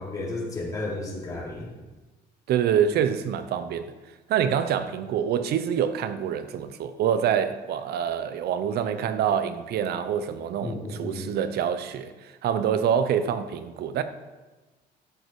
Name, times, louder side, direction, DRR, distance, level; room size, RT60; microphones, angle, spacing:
voice 1, 0.0-1.7 10.6-11.3, left 2 dB, 20° left, 3.6 m, -33 dB
voice 2, 2.5-3.9 4.3-14.0, right 8 dB, 70° right, 0.9 m, -26 dB
12.5 x 8.0 x 4.9 m
cardioid pair, 110°, 17 cm